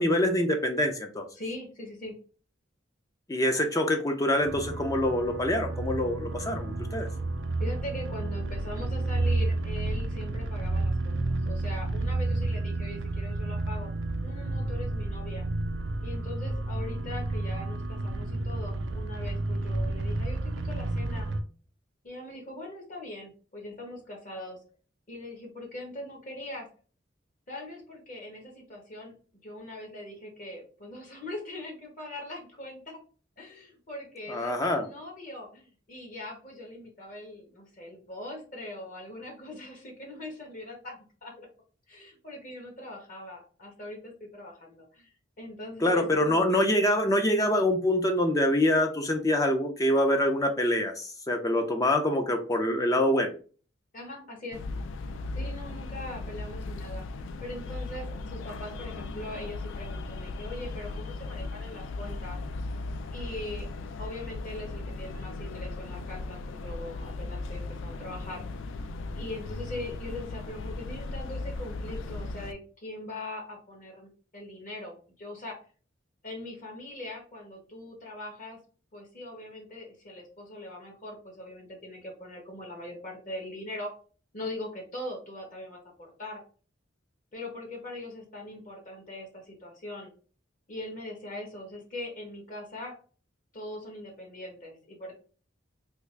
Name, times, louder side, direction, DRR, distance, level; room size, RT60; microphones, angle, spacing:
voice 1, 0.0-1.2 3.3-7.1 34.3-34.9 45.8-53.3, left 1 dB, 20° left, 4 dB, 0.4 m, -25 dB
voice 2, 1.3-2.1 7.6-11.1 11.4-13.9 14.2-15.4 16.0-21.3 22.0-24.6 25.1-26.7 27.5-29.1 29.4-33.0 33.4-41.5 41.9-45.1 45.4-46.6 53.9-54.6 55.3-57.0 57.4-62.4 63.1-63.7 64.0-68.4 69.2-75.6 76.2-78.6 78.9-83.9 84.3-86.4 87.3-90.1 90.7-92.9 93.5-95.1, left 1 dB, 45° left, 1 dB, 1.0 m, -41 dB
sound 1, 4.4-21.4, right 2 dB, 70° right, 0.4 m, -31 dB
sound 2, 54.5-72.5, left 3 dB, 90° left, 0.4 m, -37 dB
3.4 x 2.3 x 3.2 m, 0.39 s
head